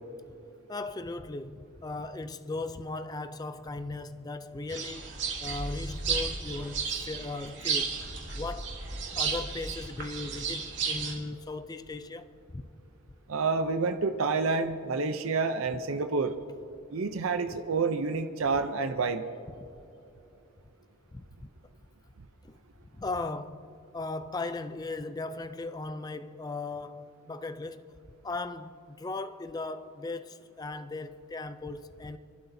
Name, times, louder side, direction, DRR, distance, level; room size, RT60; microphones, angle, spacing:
voice 1, 0.7-5.1 5.4-8.0 8.3-8.7 9.1-12.6 19.6-19.7 21.1-21.5 22.4-22.6 23.0-27.9 28.2-32.2, left 3 dB, 20° left, 0.3 m, -37 dB
sound 1, 4.7-11.1, right 5 dB, 55° right, 2.5 m, -33 dB
voice 2, 13.3-16.4 16.9-19.2, right 4 dB, 75° right, 0.6 m, -28 dB
29.5 x 12.0 x 2.7 m
head